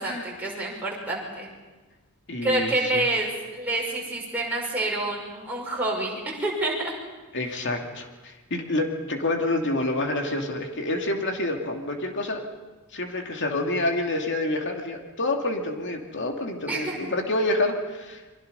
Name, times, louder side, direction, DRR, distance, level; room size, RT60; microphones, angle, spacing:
voice 1, 0.0-1.5 2.4-6.9 16.7-17.1, right 2 dB, 5° right, -3 dB, 5.9 m, -28 dB
voice 2, 2.3-3.0 7.3-12.4 12.9-18.2, left 2 dB, 55° left, 2 dB, 2.6 m, -28 dB
28.5 x 23.0 x 5.6 m, 1.2 s
head